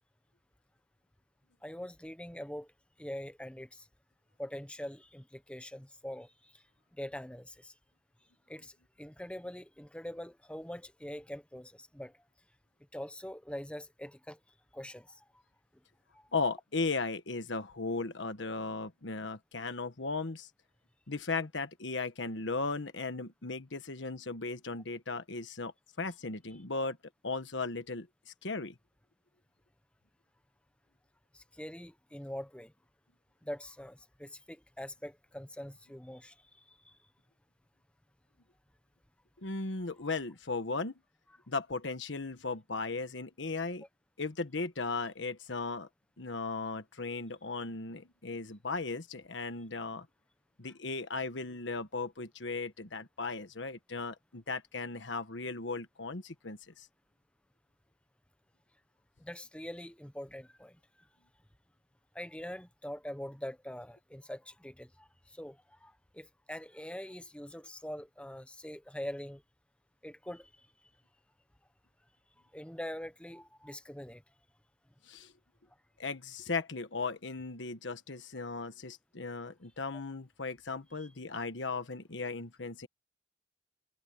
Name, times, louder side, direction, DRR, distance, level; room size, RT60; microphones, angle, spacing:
voice 1, 1.6-2.7 3.0-3.9 4.4-6.6 6.9-7.7 8.5-12.2 12.9-14.4 14.7-15.3 16.1-16.3 31.3-32.7 33.4-37.0 59.2-60.8 62.1-69.4 70.0-70.7 72.5-74.2 81.0-81.1, left 1 dB, 5° left, 1.0 m, -44 dB
voice 2, 16.3-20.5 21.1-25.7 26.0-27.0 27.2-28.8 39.4-40.9 41.5-43.8 44.2-45.9 46.2-50.1 50.6-56.9 75.0-75.3 76.0-82.9, left 3 dB, 85° left, 1.4 m, -37 dB
head